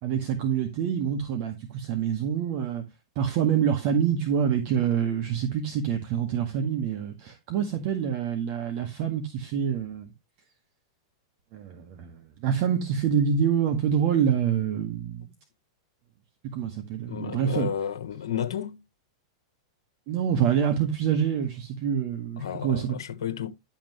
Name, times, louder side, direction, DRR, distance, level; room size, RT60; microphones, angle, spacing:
voice 1, 0.0-2.9 3.2-10.1 11.5-15.2 16.5-17.7 20.1-23.0, right 8 dB, 50° right, 1.9 m, -26 dB
voice 2, 17.1-18.8 22.4-23.5, left 9 dB, 70° left, 1.3 m, -32 dB
11.5 x 6.0 x 3.2 m
hypercardioid pair, 110°, 2 cm